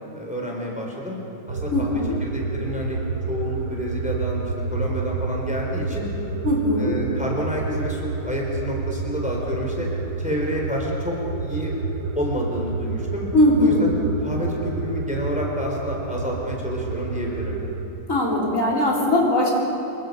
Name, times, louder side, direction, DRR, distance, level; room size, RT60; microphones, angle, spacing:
voice 1, 0.1-1.2 1.5-3.0 3.3-6.1 6.8-9.9 10.2-11.7 12.2-13.3 13.6-13.9 14.2-17.6, equal, 5° right, -1 dB, 3.7 m, -29 dB
sound 1, 1.5-17.9, right 4 dB, 80° right, 2.4 m, -29 dB
voice 2, 1.7-2.1 6.4-6.9 13.3-13.9 18.1-19.5, left 1 dB, 45° left, -3 dB, 4.1 m, -20 dB
27.0 x 23.5 x 5.4 m, 2.7 s
omnidirectional pair, 2.0 m